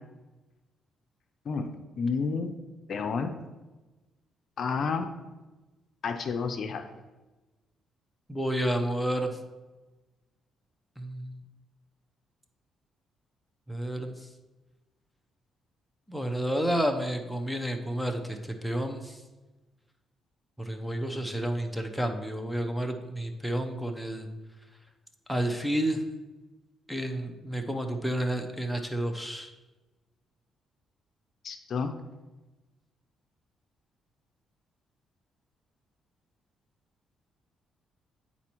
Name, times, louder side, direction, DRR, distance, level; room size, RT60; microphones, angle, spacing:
voice 1, 1.4-2.5 2.9-3.3 4.6-5.1 6.0-6.9 31.4-31.9, left 5 dB, 55° left, 6 dB, 0.5 m, -30 dB
voice 2, 8.3-9.4 11.0-11.4 13.7-14.1 16.1-19.2 20.6-24.3 25.3-26.0 26.9-29.5, right 1 dB, ahead, 4 dB, 0.7 m, -30 dB
9.7 x 4.1 x 3.0 m, 1.1 s
cardioid pair, 90°, 0 cm